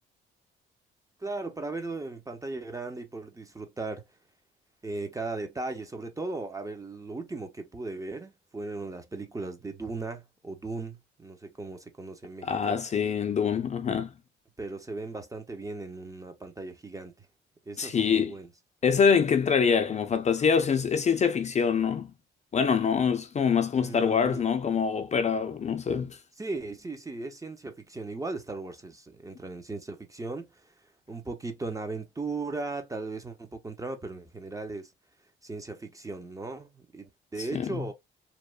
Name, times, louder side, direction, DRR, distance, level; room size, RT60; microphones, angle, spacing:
voice 1, 1.2-4.1 4.8-12.8 14.6-17.3 17.7-18.5 23.7-24.4 26.4-30.7 31.1-34.9 35.4-37.9, right 3 dB, 15° right, 0.6 m, -37 dB
voice 2, 12.4-14.1 17.8-18.3 18.8-22.1 22.5-26.2 37.5-37.9, left 6 dB, 35° left, 0.5 m, -25 dB
2.9 x 2.0 x 2.3 m
cardioid pair, 90°, 20 cm